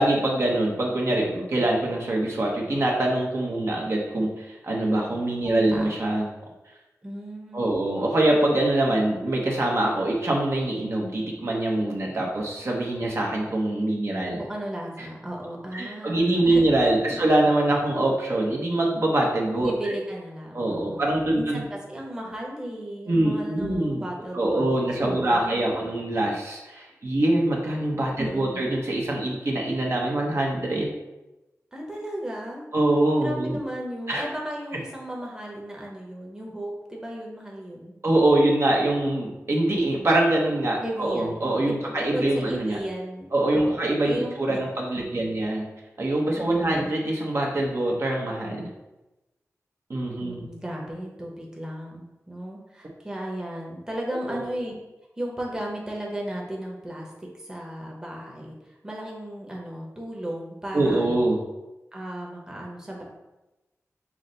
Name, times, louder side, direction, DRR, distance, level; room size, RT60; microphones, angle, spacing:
voice 1, 0.0-6.3 7.5-14.4 15.7-19.9 20.5-21.6 23.1-24.1 24.3-30.9 32.7-33.6 34.1-34.2 38.0-42.8 43.3-45.7 46.0-48.7 49.9-50.5 54.3-54.4 60.7-61.4, right 1 dB, 55° right, -2 dB, 0.8 m, -24 dB
voice 2, 5.4-5.9 7.0-7.8 14.4-17.2 19.6-25.7 28.2-28.7 31.7-32.7 33.2-37.9 40.8-41.4 41.7-43.3 43.5-44.7 45.0-45.4 46.3-46.9 50.2-54.7 55.2-58.5 58.8-61.2 61.9-63.0, right 1 dB, 10° right, -2 dB, 0.9 m, -35 dB
5.9 x 2.1 x 3.9 m, 1.0 s
wide cardioid pair, 90°, 6 cm